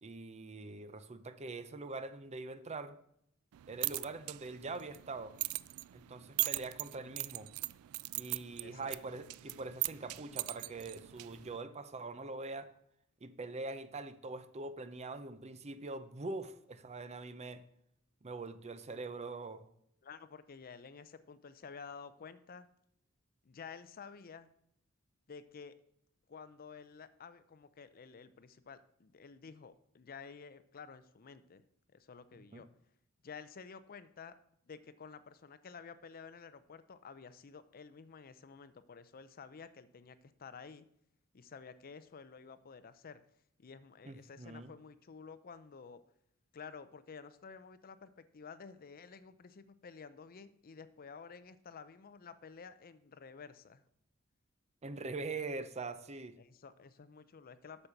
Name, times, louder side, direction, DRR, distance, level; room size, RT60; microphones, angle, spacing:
voice 1, 0.0-2.9 3.7-5.3 5.9-7.5 8.1-12.7 13.2-17.6 18.2-19.6 32.5-32.6 44.0-44.7 54.8-56.4, right 3 dB, 30° right, 11 dB, 0.6 m, -43 dB
sound 1, 3.5-11.6, right 20 dB, 85° right, 0.3 m, -40 dB
voice 2, 8.6-8.9 20.0-22.7 23.4-24.5 25.3-25.7 26.3-31.6 31.9-32.7 33.2-34.4 34.7-40.9 41.3-43.2 43.6-46.0 46.5-53.8 56.4-57.9, left 5 dB, 45° left, 13 dB, 0.5 m, -51 dB
8.5 x 6.6 x 5.8 m, 0.72 s
head